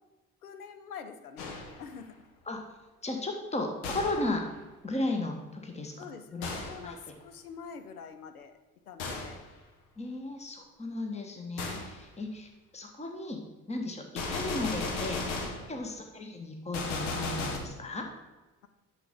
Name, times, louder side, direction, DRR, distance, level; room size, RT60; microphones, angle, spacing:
voice 1, 0.4-2.1 6.0-8.6 8.9-9.4 15.5-15.8, left 6 dB, 85° left, 9 dB, 0.7 m, -46 dB
Gunshot gunfire, 1.4-1.9 3.8-4.4 6.4-6.9 9.0-9.4 11.6-11.9 14.2-15.7 16.7-17.6, left 3 dB, 65° left, 1.3 m, -35 dB
voice 2, 3.0-4.5 4.8-6.0 6.3-6.5 6.8-6.9 10.0-13.4 13.7-15.3 15.7-18.1, left 2 dB, 15° left, 3 dB, 1.3 m, -35 dB
9.7 x 6.3 x 3.7 m, 1.2 s
figure-of-eight pair, 50°, 43 cm